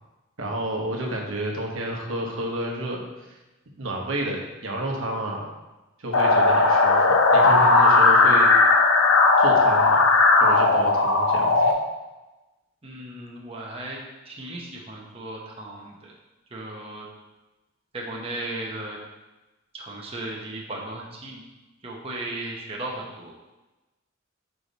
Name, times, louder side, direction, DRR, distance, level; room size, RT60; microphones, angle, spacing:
voice 1, 0.4-3.4 3.8-5.5 6.0-8.5 9.4-10.1 10.3-11.6, right 1 dB, 80° right, 0 dB, 1.1 m, -30 dB
sound 1, 6.1-11.7, left 3 dB, 85° left, 0.8 m, -17 dB
voice 2, 12.8-14.0 14.2-16.1 16.5-17.1 17.9-19.0 19.7-21.4 21.8-23.3, right 2 dB, 30° right, -2 dB, 0.9 m, -36 dB
5.6 x 4.9 x 4.1 m, 1.1 s
head